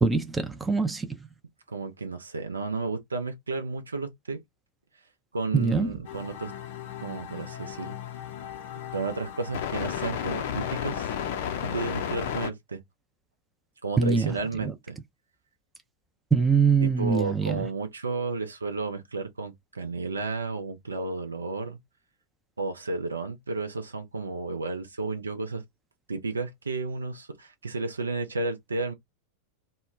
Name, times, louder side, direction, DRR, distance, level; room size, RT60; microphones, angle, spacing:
voice 1, 0.0-1.3 5.5-6.0 14.0-14.7 16.3-17.7, right 5 dB, 10° right, 0.4 m, -24 dB
voice 2, 1.7-4.4 5.3-6.5 7.0-7.9 8.9-11.1 11.6-12.8 13.8-15.0 16.8-21.8 22.6-25.6 26.1-28.9, right 3 dB, 75° right, 0.5 m, -32 dB
sound 1, 6.1-12.5, left 9 dB, 50° left, 0.5 m, -34 dB
2.1 x 2.1 x 3.2 m
figure-of-eight pair, 90°, 0 cm